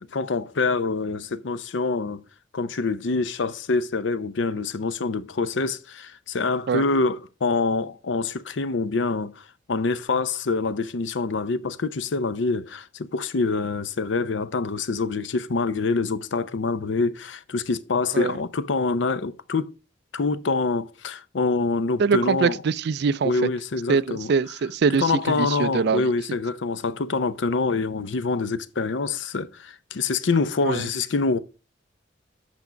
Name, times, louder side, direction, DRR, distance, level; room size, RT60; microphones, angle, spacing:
voice 1, 0.1-2.2 2.5-19.7 20.1-22.6 23.2-24.3 25.0-31.4, left 3 dB, 80° left, 0.6 m, -25 dB
voice 2, 22.0-23.3 23.9-26.1 30.6-30.8, right 5 dB, 65° right, 0.4 m, -23 dB
8.3 x 6.0 x 5.0 m
head